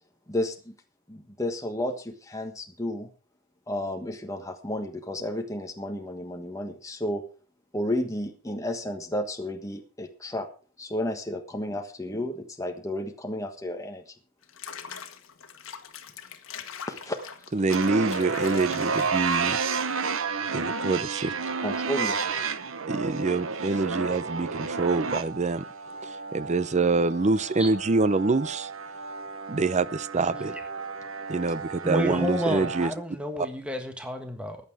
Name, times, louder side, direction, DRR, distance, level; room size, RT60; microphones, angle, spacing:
voice 1, 0.3-0.7 1.1-3.1 3.7-7.2 7.7-10.5 10.8-14.1 16.9-17.2 21.6-22.5, left 1 dB, 15° left, 1.4 m, -32 dB
Water / Bathtub (filling or washing), 14.4-19.9, left 7 dB, 85° left, 1.5 m, -43 dB
voice 2, 17.5-19.6 20.5-21.3 22.9-25.6 26.0-28.7 29.5-30.6 31.3-32.9 33.4-33.5, right 3 dB, 35° right, 0.6 m, -26 dB
sound 1, 17.7-32.9, right 5 dB, 75° right, 1.0 m, -31 dB
voice 3, 31.8-34.6, equal, 5° right, 1.5 m, -30 dB
15.0 x 9.6 x 4.8 m
head